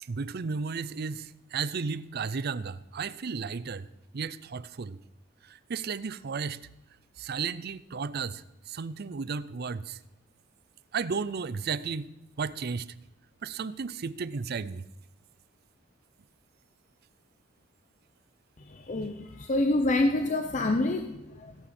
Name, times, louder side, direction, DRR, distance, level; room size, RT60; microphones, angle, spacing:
voice 1, 0.0-3.9 4.1-5.0 5.4-6.7 7.2-10.0 10.9-12.9 13.4-14.9, right 5 dB, 50° right, 0.5 m, -34 dB
voice 2, 18.6-21.6, left 2 dB, 35° left, 0.7 m, -27 dB
16.5 x 11.5 x 4.3 m
head